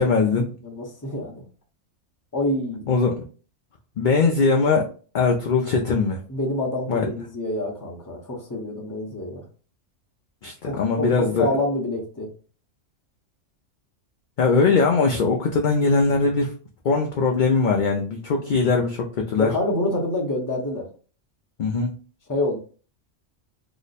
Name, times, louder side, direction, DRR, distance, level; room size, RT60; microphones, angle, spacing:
voice 1, 0.0-0.5 2.9-3.2 4.0-4.9 5.1-6.2 6.9-7.1 10.4-11.5 14.4-16.5 16.8-19.5 21.6-21.9, left 4 dB, 60° left, 1 dB, 0.5 m, -21 dB
voice 2, 0.6-1.4 2.3-3.0 6.3-9.4 10.6-12.3 19.4-20.9 22.3-22.6, left 1 dB, 20° left, -1 dB, 0.7 m, -27 dB
2.9 x 2.1 x 4.0 m, 0.39 s
omnidirectional pair, 1.3 m